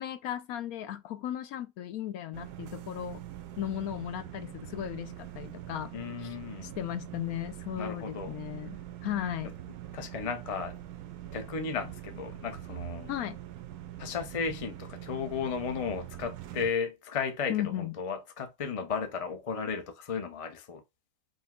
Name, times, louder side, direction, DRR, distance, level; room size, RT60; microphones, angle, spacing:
voice 1, 0.0-3.2 3.6-5.9 6.2-6.4 6.6-9.5 13.1-13.4 17.5-18.0, left 11 dB, 70° left, 1.0 m, -36 dB
sound 1, 2.3-16.7, right 12 dB, 80° right, 1.2 m, -43 dB
voice 2, 5.9-6.7 7.8-8.3 9.9-10.8 11.3-13.1 14.0-20.8, left 5 dB, 45° left, 0.4 m, -34 dB
5.2 x 2.2 x 3.6 m
omnidirectional pair, 1.7 m